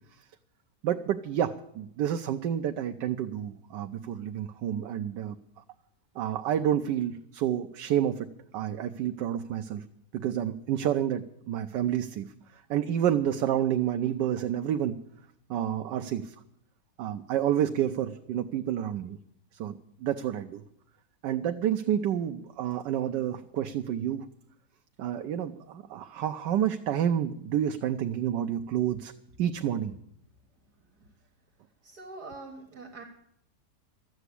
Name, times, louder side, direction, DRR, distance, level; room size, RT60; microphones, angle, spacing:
voice 1, 0.8-5.4 6.2-8.3 8.5-9.8 10.1-12.3 12.5-15.0 15.5-16.3 17.0-19.2 19.5-20.6 21.2-24.2 25.0-29.1 29.4-29.9, right 10 dB, 85° right, 6 dB, 1.3 m, -29 dB
voice 2, 31.8-33.0, right 3 dB, 65° right, 3 dB, 2.1 m, -44 dB
13.5 x 8.1 x 9.7 m, 0.74 s
omnidirectional pair, 1.8 m